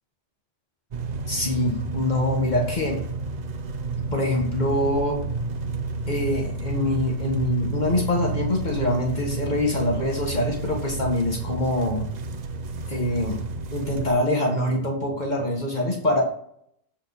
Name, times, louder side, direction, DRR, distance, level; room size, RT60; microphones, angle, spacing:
sound 1, 0.9-14.1, right 3 dB, 50° right, 0.6 m, -31 dB
voice 1, 1.3-3.0 4.1-5.2 6.1-12.0 12.9-13.4 13.7-16.2, left 1 dB, 45° left, 0 dB, 1.4 m, -24 dB
7.3 x 4.4 x 3.9 m, 0.66 s
omnidirectional pair, 1.1 m